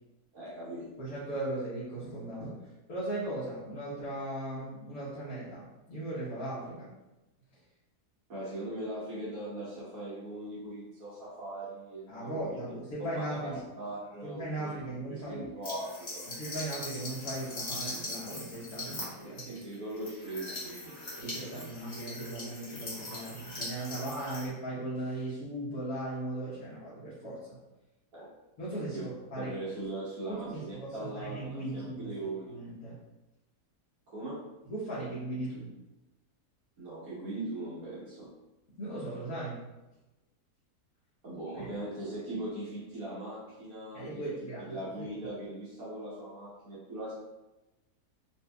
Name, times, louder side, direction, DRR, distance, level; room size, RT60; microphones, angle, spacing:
voice 1, 0.3-0.9 8.3-12.6 13.0-13.5 13.8-14.7 15.1-16.2 19.2-21.7 28.1-28.3 28.9-29.0 29.3-32.6 34.1-34.4 36.8-38.3 41.2-44.2 44.7-47.1, right 1 dB, 65° right, -9 dB, 1.5 m, -40 dB
voice 2, 1.0-6.9 12.1-13.6 14.2-15.5 16.3-19.4 21.2-27.6 28.6-29.5 30.3-32.1 32.5-33.0 34.7-35.7 38.8-39.6 41.5-41.7 43.9-45.1, right 1 dB, 65° left, -10 dB, 1.4 m, -38 dB
sound 1, 15.6-24.5, left 2 dB, 35° left, 0.9 m, -41 dB
4.3 x 2.8 x 2.2 m, 1.0 s
omnidirectional pair, 1.7 m